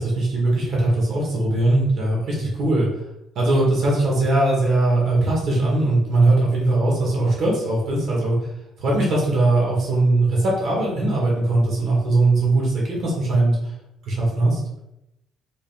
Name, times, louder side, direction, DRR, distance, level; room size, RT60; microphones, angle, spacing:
voice 1, 0.0-2.9 3.3-8.5 8.8-13.7 14.1-14.6, right 2 dB, 55° right, -3 dB, 1.3 m, -20 dB
3.8 x 3.5 x 2.5 m, 0.85 s
cardioid pair, 155°, 0 cm